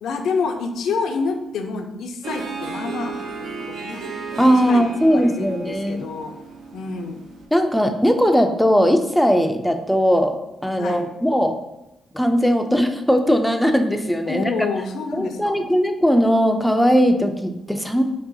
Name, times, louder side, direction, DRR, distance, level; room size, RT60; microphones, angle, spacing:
voice 1, 0.0-3.2 3.7-4.0 4.4-6.3 6.7-7.2 10.8-11.0 14.3-15.8, left 4 dB, 80° left, 6 dB, 0.4 m, -28 dB
Harp, 2.2-7.4, right 4 dB, 80° right, 0.6 m, -34 dB
voice 2, 4.4-6.1 7.5-10.4 10.6-11.6 12.1-14.5 15.1-18.0, equal, 5° left, 6 dB, 0.4 m, -18 dB
5.3 x 2.3 x 2.6 m, 0.91 s
cardioid pair, 100°, 0 cm